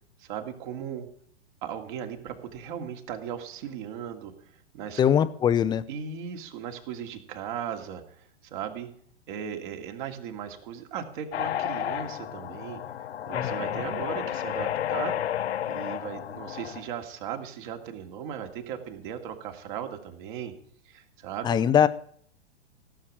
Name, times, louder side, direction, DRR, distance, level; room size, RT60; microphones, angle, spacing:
voice 1, 0.2-1.1 1.6-5.0 5.9-8.9 9.3-15.2 15.6-20.5 20.8-21.7, right 8 dB, 45° right, 5 dB, 2.5 m, -37 dB
voice 2, 5.0-5.8 13.3-13.8 21.4-21.9, left 9 dB, 10° left, 13 dB, 0.5 m, -22 dB
sound 1, 11.3-16.9, left 10 dB, 65° left, 0.7 m, -31 dB
16.5 x 7.2 x 8.8 m, 0.62 s
figure-of-eight pair, 115°, 35 cm